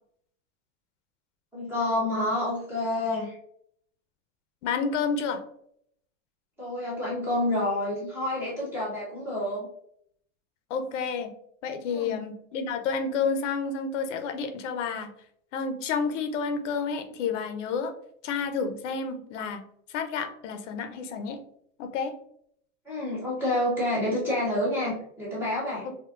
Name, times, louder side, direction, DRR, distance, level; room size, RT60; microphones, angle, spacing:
voice 1, 1.5-3.4 6.6-9.7 11.9-12.2 22.9-25.9, left 1 dB, 5° right, -8 dB, 0.5 m, -28 dB
voice 2, 4.6-5.4 10.7-11.3 11.6-15.1 15.5-17.9 18.2-19.6 19.9-21.4 21.8-22.1, left 5 dB, 70° left, 7 dB, 0.6 m, -30 dB
3.6 x 2.6 x 2.3 m, 0.68 s
supercardioid pair, 180°, 37 cm